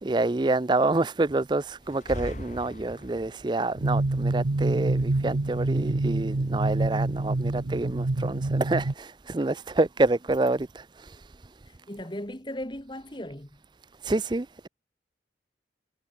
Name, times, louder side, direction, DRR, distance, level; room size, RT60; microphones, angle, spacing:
voice 1, 0.0-11.1 14.0-14.7, right 2 dB, 25° right, 0.5 m, -27 dB
sound 1, 1.8-3.5, left 1 dB, 40° left, 4.4 m, -39 dB
sound 2, 3.8-8.9, right 2 dB, 85° right, 1.0 m, -26 dB
voice 2, 11.7-13.6, left 1 dB, 25° left, 2.5 m, -37 dB
head